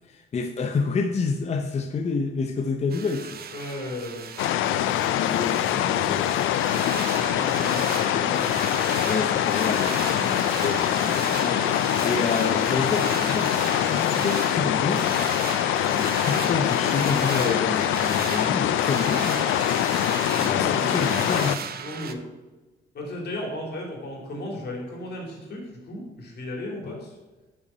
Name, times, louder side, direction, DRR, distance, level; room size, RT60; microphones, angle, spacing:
voice 1, 0.0-3.4 5.1-6.7 9.0-15.1 15.9-19.4 20.4-21.6 26.8-26.9, left 4 dB, 35° left, 6 dB, 0.6 m, -29 dB
sound 1, 2.9-22.1, right 7 dB, 50° right, 0.7 m, -35 dB
voice 2, 3.5-4.4 7.2-8.5 20.3-21.2 21.8-22.2 22.9-27.2, left 1 dB, 55° left, 0 dB, 2.7 m, -35 dB
sound 2, 4.4-21.6, left 12 dB, 80° left, 0.4 m, -24 dB
6.6 x 5.8 x 5.6 m, 1.2 s
cardioid pair, 90°, 20 cm